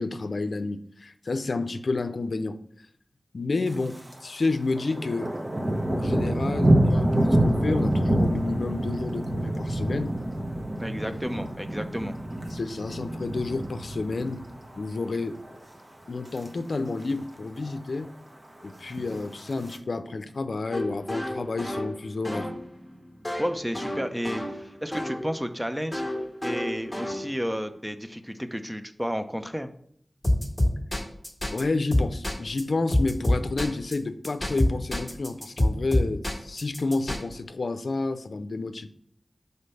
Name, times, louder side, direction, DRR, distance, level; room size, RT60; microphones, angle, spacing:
voice 1, 0.0-2.6 3.3-5.3 5.9-10.2 12.5-14.4 14.8-15.4 16.1-18.1 18.6-22.5 31.5-38.9, left 3 dB, 80° left, 10 dB, 0.5 m, -30 dB
Thunder, 3.7-4.2 4.5-14.8 15.2-15.6 16.0-16.5 16.7-16.8 17.0-17.1 17.5-18.1 18.8-19.8, right 1 dB, 35° right, 0.9 m, -27 dB
voice 2, 10.8-12.2 23.4-26.0 26.4-29.7, equal, 10° right, 8 dB, 0.6 m, -32 dB
sound 1, 20.7-25.3 25.9-27.6 30.2-31.6 31.9-32.6 32.9-33.9 34.2-37.2, left 1 dB, 10° left, 1.6 m, -27 dB
5.2 x 4.0 x 5.5 m, 0.66 s
wide cardioid pair, 70°, 0 cm